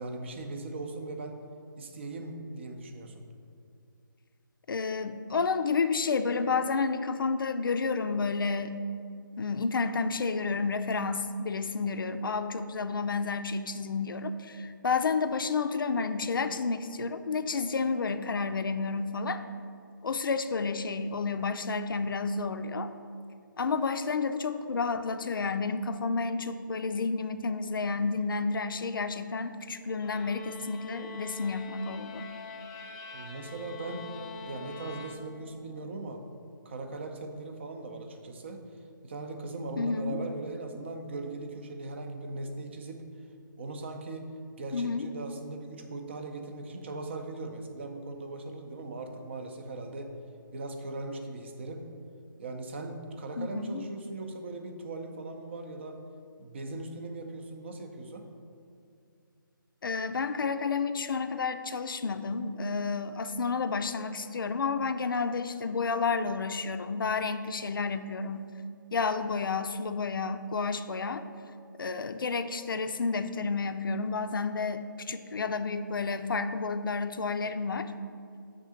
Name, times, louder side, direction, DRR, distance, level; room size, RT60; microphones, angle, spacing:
voice 1, 0.0-1.4 1.8-3.2 33.1-34.1 34.4-36.2 36.6-38.6 39.0-43.0 43.6-44.3 44.6-50.1 50.5-51.8 52.4-56.0 56.4-58.3, right 2 dB, 30° right, 5 dB, 0.6 m, -39 dB
voice 2, 4.7-8.8 9.4-19.4 20.0-22.9 23.6-32.3 39.8-40.2 44.7-45.1 53.4-53.8 59.8-68.5 68.9-71.2 71.8-77.9, left 4 dB, 75° left, 9 dB, 0.4 m, -30 dB
sound 1, 30.0-35.6, left 3 dB, 15° left, 0.4 m, -44 dB
6.8 x 3.6 x 6.2 m, 2.4 s
hypercardioid pair, 165°, 11 cm